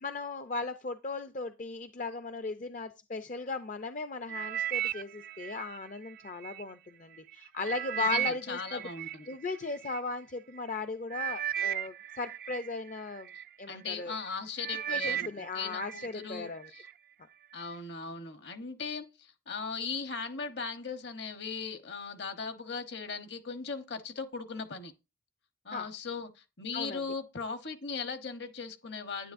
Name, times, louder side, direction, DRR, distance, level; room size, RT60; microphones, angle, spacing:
voice 1, 0.0-8.8 9.3-13.3 13.6-14.1 14.9-16.6 25.7-25.9 26.7-27.0, left 3 dB, 40° left, 0.5 m, -37 dB
sound 1, 4.3-6.6 7.1-10.0 10.7-10.8 11.1-13.5 14.0-14.3 14.6-16.1 16.5-16.9 17.5-17.6, right 11 dB, 50° right, 0.4 m, -36 dB
voice 2, 7.9-9.3 13.7-16.9 17.5-24.9 25.6-29.3, left 5 dB, 60° left, 1.0 m, -38 dB
10.0 x 9.6 x 2.6 m
head